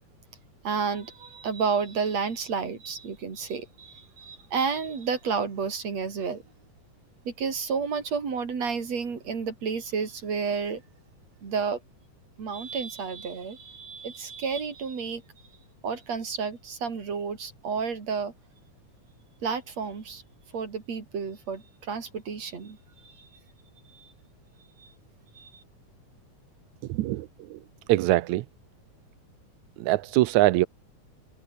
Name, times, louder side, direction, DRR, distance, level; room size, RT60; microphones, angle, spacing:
voice 1, 0.6-6.4 7.2-10.8 11.4-11.8 12.4-15.2 15.8-18.3 19.4-20.2 20.5-22.8 23.0-23.3 23.9-24.1 24.8-24.9 25.4-25.6, right 5 dB, 60° right, 5.0 m, -31 dB
voice 2, 26.9-27.3 27.9-28.4 29.8-30.7, right 17 dB, 80° right, 2.0 m, -22 dB
omnidirectional pair, 3.4 m